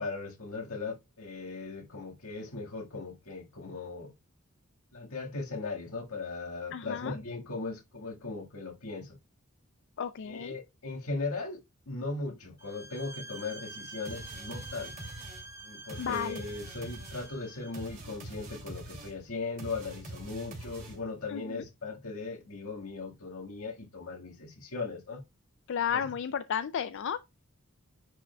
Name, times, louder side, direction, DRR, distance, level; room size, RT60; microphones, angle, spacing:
voice 1, 0.0-4.1 4.9-9.2 10.2-14.9 15.6-25.2 25.9-26.0, left 3 dB, 80° left, 1.8 m, -38 dB
voice 2, 6.7-7.1 10.0-10.5 16.0-16.4 21.3-21.6 25.7-27.2, left 8 dB, 55° left, 0.4 m, -33 dB
sound 1, 12.6-17.9, right 2 dB, 15° right, 0.9 m, -47 dB
sound 2, 14.0-21.2, right 1 dB, 40° right, 2.5 m, -45 dB
10.0 x 4.9 x 2.3 m
head